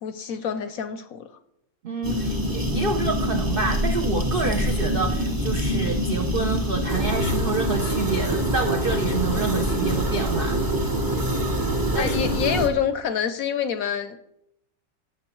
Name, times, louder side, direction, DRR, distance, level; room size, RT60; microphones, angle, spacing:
voice 1, 0.0-1.3 12.0-14.2, left 8 dB, 70° left, 10 dB, 0.8 m, -27 dB
voice 2, 1.8-10.7 11.9-12.2, right 4 dB, 85° right, 4 dB, 0.4 m, -28 dB
sound 1, 2.0-12.7, equal, 20° right, 0.6 m, -25 dB
15.0 x 6.3 x 3.0 m, 0.81 s
omnidirectional pair, 1.9 m